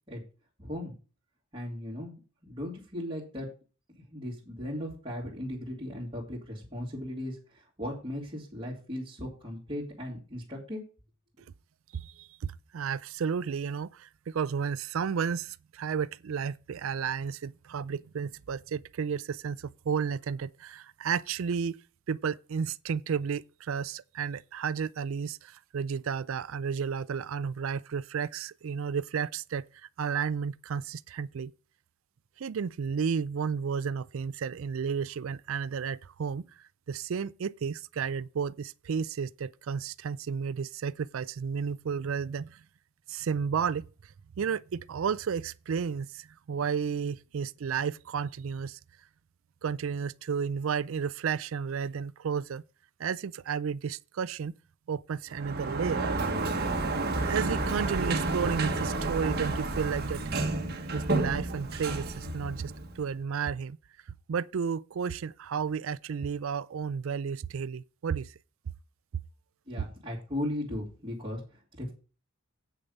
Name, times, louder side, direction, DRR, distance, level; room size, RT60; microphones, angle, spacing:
voice 1, 0.6-0.9 1.5-3.5 3.9-10.8 69.7-71.9, left 1 dB, 25° right, 2.9 m, -37 dB
voice 2, 11.9-21.8 22.1-29.6 30.0-31.5 32.4-36.5 36.9-42.6 43.1-43.9 44.4-48.8 49.6-52.6 53.0-54.5 54.9-56.2 57.2-60.2 60.9-63.8 64.3-68.3 69.8-69.9, right 6 dB, 70° right, 0.4 m, -32 dB
Sliding door, 55.3-63.1, right 2 dB, 50° right, 1.4 m, -30 dB
8.5 x 6.7 x 5.3 m
head